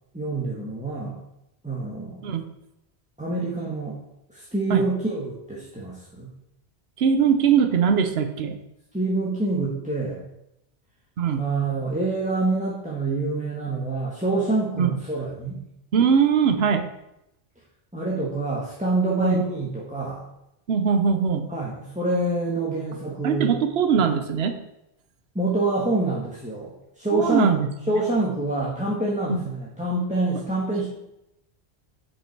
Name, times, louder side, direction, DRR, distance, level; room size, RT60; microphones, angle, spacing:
voice 1, 0.1-1.2 1.6-2.2 3.2-4.0 4.3-6.3 8.9-10.3 11.4-15.6 17.9-20.2 21.5-23.5 25.3-27.5 27.9-30.9, right 2 dB, 5° right, -5 dB, 1.2 m, -26 dB
voice 2, 7.0-8.6 11.2-11.4 14.8-15.0 15.9-16.9 19.2-19.4 20.7-21.5 23.2-24.6 27.1-27.7 29.3-29.4, right 6 dB, 70° right, 8 dB, 1.0 m, -21 dB
7.6 x 5.6 x 4.5 m, 0.85 s
omnidirectional pair, 1.1 m